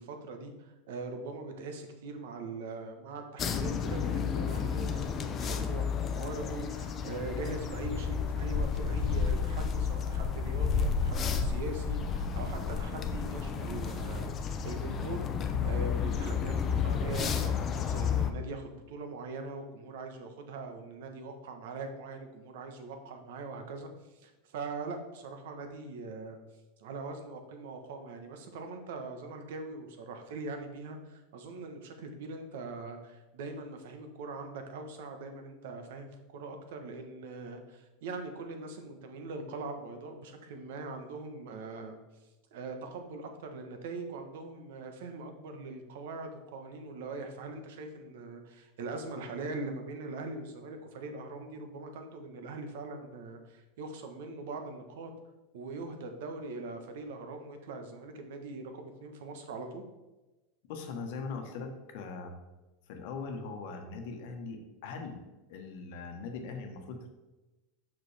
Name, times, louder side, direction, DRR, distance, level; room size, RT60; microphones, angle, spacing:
voice 1, 0.0-15.3 15.6-23.9 24.1-26.4 26.8-42.0 42.5-55.1 55.5-59.8, right 3 dB, 70° right, 5 dB, 1.1 m, -42 dB
sound 1, 3.4-18.3, left 6 dB, 25° left, 0.5 m, -31 dB
voice 2, 60.6-62.4 62.9-65.2 65.5-67.1, left 4 dB, 60° left, 4 dB, 1.1 m, -40 dB
7.1 x 6.0 x 3.4 m, 1.1 s
supercardioid pair, 160°, 0 cm